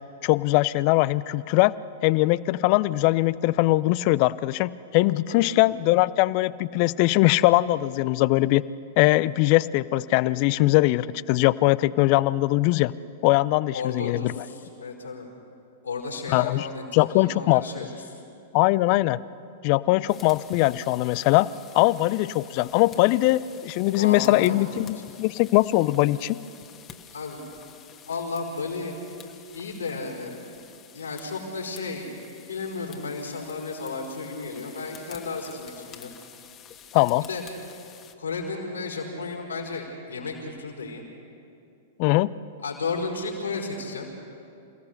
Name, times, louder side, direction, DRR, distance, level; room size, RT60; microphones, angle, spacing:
voice 1, 0.2-1.7 2.0-8.6 9.0-12.9 13.2-14.4 16.3-16.7 16.9-17.6 18.5-19.2 19.6-21.5 21.7-26.4 36.9-37.3 42.0-42.3, left 18 dB, 45° left, 18 dB, 0.5 m, -21 dB
voice 2, 13.7-15.3 15.8-18.0 23.9-24.6 27.1-27.4 28.0-28.9 29.5-30.4 30.9-32.1 32.5-36.1 37.2-37.4 38.2-41.0 42.6-44.1, left 4 dB, 80° left, -1 dB, 4.7 m, -33 dB
sound 1, 20.1-38.1, left 8 dB, 30° left, 1.6 m, -49 dB
28.0 x 16.5 x 6.7 m, 2.6 s
figure-of-eight pair, 100°, 0 cm